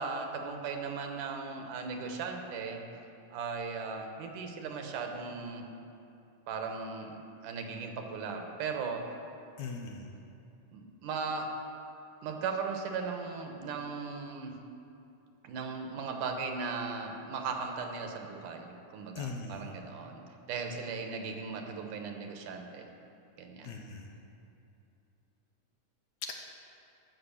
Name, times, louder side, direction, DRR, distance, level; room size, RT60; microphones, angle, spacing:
voice 1, 0.0-2.8 3.3-5.7 6.5-9.1 10.7-11.5 12.2-14.6 15.4-22.9 23.4-23.7, right 5 dB, 75° right, 4 dB, 2.5 m, -37 dB
voice 2, 9.6-10.0 19.2-19.6 23.6-24.1, left 4 dB, 70° left, 2 dB, 2.1 m, -39 dB
13.5 x 6.6 x 7.0 m, 2.7 s
omnidirectional pair, 3.7 m